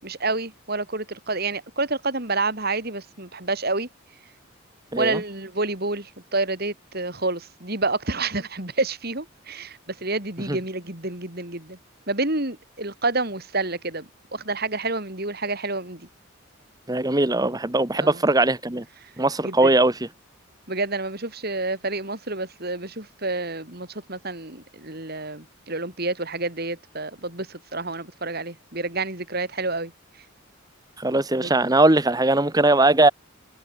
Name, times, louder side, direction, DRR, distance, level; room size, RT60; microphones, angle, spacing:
voice 1, 0.0-3.9 5.0-11.8 12.1-16.1 17.9-18.2 19.0-19.1 19.4-19.7 20.7-29.9 30.2-30.3 31.3-31.5, right 3 dB, 45° right, 4.3 m, -29 dB
voice 2, 16.9-18.8 19.2-19.9 31.0-33.1, right 2 dB, 20° right, 1.3 m, -20 dB
head